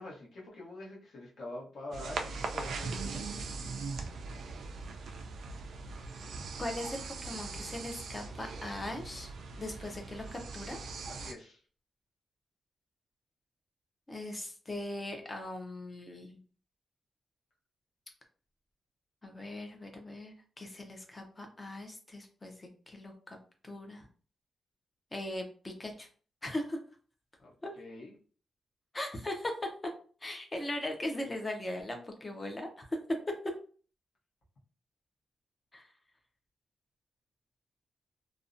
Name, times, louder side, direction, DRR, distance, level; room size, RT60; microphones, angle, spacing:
voice 1, 0.0-3.5 10.2-10.3 11.1-11.6 27.4-28.1, left 2 dB, 60° left, -4 dB, 0.9 m, -46 dB
sound 1, 1.9-11.3, right 4 dB, 65° right, 0.3 m, -40 dB
voice 2, 6.6-9.3 9.6-10.8 14.1-16.4 19.2-23.4 23.6-24.1 25.1-26.1 26.4-26.8 27.6-27.7 28.9-29.5 30.2-32.8 35.7-35.8, left 1 dB, 15° left, 3 dB, 0.4 m, -39 dB
2.5 x 2.0 x 2.5 m, 0.41 s
wide cardioid pair, 180°, 0 cm